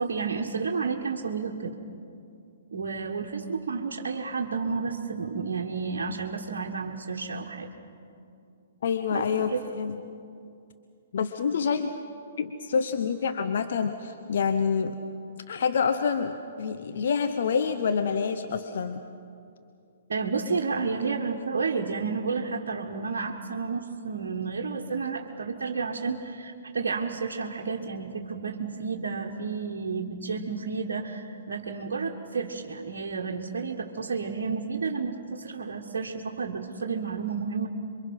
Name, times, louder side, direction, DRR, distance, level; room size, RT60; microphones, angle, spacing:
voice 1, 0.0-1.8 2.7-7.7 9.1-9.7 20.1-37.7, right 5 dB, 65° right, -1 dB, 1.4 m, -31 dB
voice 2, 8.8-10.0 11.1-11.9 12.4-15.0 15.5-19.0, left 6 dB, 60° left, 8 dB, 1.0 m, -27 dB
27.5 x 23.5 x 5.6 m, 2.5 s
figure-of-eight pair, 120°, 0 cm